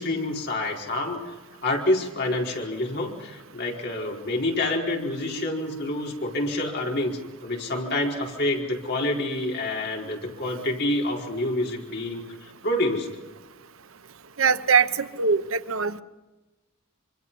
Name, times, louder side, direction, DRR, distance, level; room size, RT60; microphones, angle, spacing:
voice 1, 0.0-1.3 1.6-13.1, left 1 dB, 55° left, -1 dB, 4.6 m, -27 dB
voice 2, 14.4-16.0, right 5 dB, 85° right, 12 dB, 1.0 m, -22 dB
26.0 x 25.0 x 5.5 m, 1.1 s
head